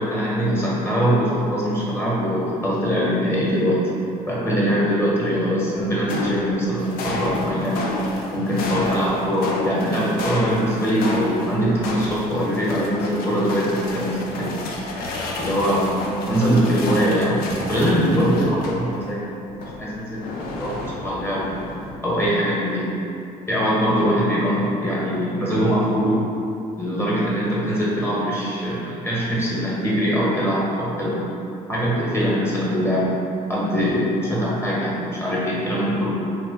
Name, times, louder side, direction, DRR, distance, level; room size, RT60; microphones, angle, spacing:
voice 1, 0.0-3.8 4.3-7.9 8.3-14.5 15.3-19.4 19.8-20.2 20.5-21.5 22.0-22.9 23.5-26.3 26.8-31.2 31.7-33.1 33.5-36.1, equal, 15° left, -7 dB, 1.0 m, -22 dB
sound 1, 5.8-19.1 19.5-22.2, left 2 dB, 80° left, 0.4 m, -31 dB
2.9 x 2.4 x 3.7 m, 2.7 s
cardioid pair, 80°, 15 cm